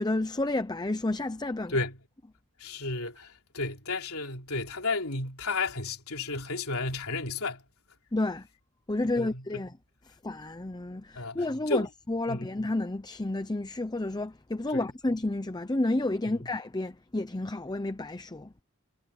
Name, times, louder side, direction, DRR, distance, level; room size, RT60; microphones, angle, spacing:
voice 1, 0.0-1.7 8.1-8.5 8.9-9.7 10.2-18.5, left 2 dB, 20° left, 0.7 m, -30 dB
voice 2, 1.7-2.0 2.6-7.6 9.0-9.7 11.2-11.9 12.3-12.5 14.7-14.8 16.3-16.5, left 3 dB, 70° left, 4.0 m, -33 dB
head